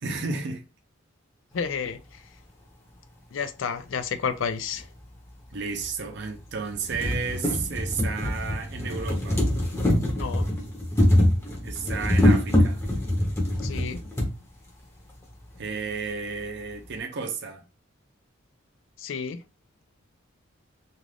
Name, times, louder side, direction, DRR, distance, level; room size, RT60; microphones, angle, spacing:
voice 1, 0.0-0.6 5.5-9.4 11.6-12.8 15.6-17.6, right 5 dB, 55° right, 0.6 m, -32 dB
voice 2, 1.5-2.2 3.3-4.9 10.1-10.5 13.6-14.0 19.0-19.4, left 6 dB, 70° left, 0.4 m, -31 dB
sound 1, 4.7-4.8 5.8-5.9 6.3-6.4 6.7-14.3 15.2-15.3 15.6-15.7, left 1 dB, 15° left, 0.7 m, -24 dB
2.5 x 2.4 x 3.3 m
head